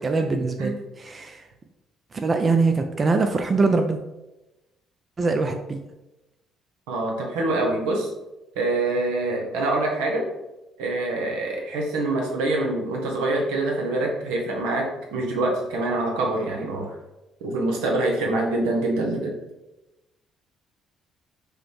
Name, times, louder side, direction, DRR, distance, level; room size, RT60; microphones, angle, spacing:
voice 1, 0.0-1.5 2.1-4.0 5.2-5.8, right 3 dB, 40° right, 5 dB, 0.4 m, -23 dB
voice 2, 6.9-8.1 8.6-10.2 10.8-16.9 17.4-19.3, right 2 dB, 85° right, 0 dB, 0.8 m, -25 dB
4.9 x 2.1 x 3.2 m, 0.98 s
supercardioid pair, 60°, 0 cm